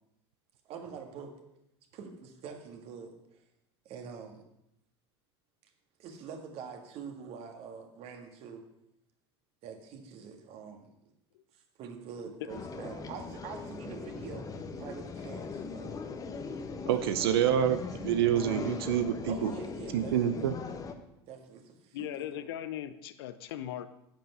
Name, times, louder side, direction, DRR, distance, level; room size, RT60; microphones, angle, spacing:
voice 1, 0.7-1.3 1.9-3.4 3.9-4.4 6.0-8.6 9.6-10.9 11.5-16.0 16.9-17.1 19.3-20.4 21.3-22.5, right 6 dB, 45° right, 4 dB, 1.8 m, -45 dB
sound 1, 12.5-20.9, left 4 dB, 25° left, 1.0 m, -40 dB
voice 2, 16.9-19.5 19.9-20.5, right 10 dB, 60° right, 10 dB, 0.7 m, -27 dB
voice 3, 21.9-23.9, left 11 dB, 60° left, 12 dB, 0.7 m, -38 dB
10.0 x 7.9 x 5.5 m, 0.83 s
figure-of-eight pair, 75°, 14 cm